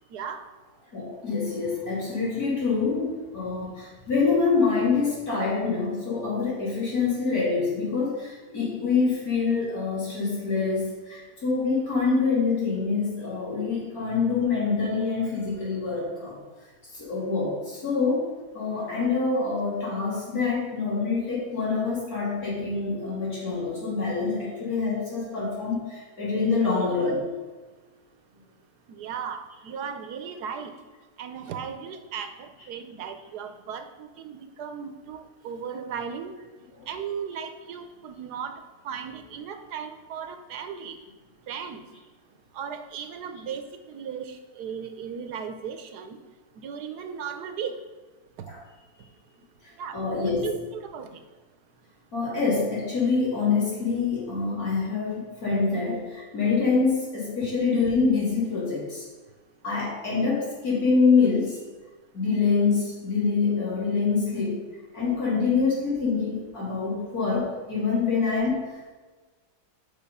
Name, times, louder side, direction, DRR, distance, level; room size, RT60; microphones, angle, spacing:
voice 1, 0.1-0.4 29.0-30.7 31.2-36.3 36.9-38.6 38.8-41.0 41.5-41.8 42.5-46.2 46.6-47.7 49.8-50.0 50.4-51.1, right 7 dB, 90° right, 8 dB, 1.4 m, -36 dB
voice 2, 0.9-16.4 16.9-18.3 18.5-27.2 36.7-36.8 48.5-48.6 49.6-50.6 52.1-59.1 59.6-61.6 62.1-64.6 64.9-68.9, left 4 dB, 70° left, -7 dB, 3.6 m, -25 dB
8.9 x 5.6 x 5.5 m, 1.3 s
omnidirectional pair, 1.7 m